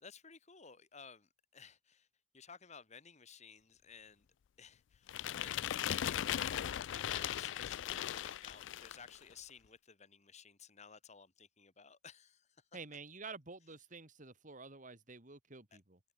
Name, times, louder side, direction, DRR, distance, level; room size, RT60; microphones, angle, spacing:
voice 1, 0.0-2.1 2.3-4.3 4.6-12.5 15.7-15.8, left 6 dB, 40° left, 1.9 m, -56 dB
sound 1, 5.1-9.1, left 10 dB, 85° left, 0.4 m, -38 dB
voice 2, 12.7-16.0, right 4 dB, 45° right, 2.4 m, -50 dB
head